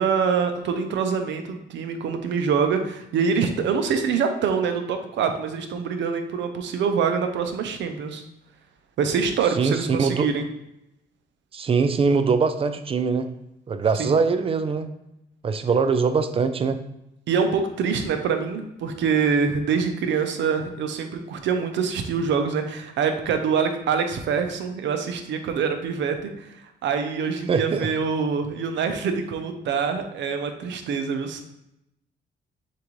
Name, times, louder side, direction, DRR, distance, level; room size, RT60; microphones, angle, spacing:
voice 1, 0.0-8.2 9.0-10.4 14.0-14.2 17.3-26.5 26.8-31.4, right 6 dB, 75° right, 6 dB, 0.7 m, -25 dB
voice 2, 9.5-10.3 11.5-13.3 13.7-14.9 15.4-16.8 27.5-27.9, right 5 dB, 30° right, 10 dB, 0.4 m, -22 dB
6.5 x 2.6 x 3.1 m, 0.84 s
cardioid pair, 110°, 19 cm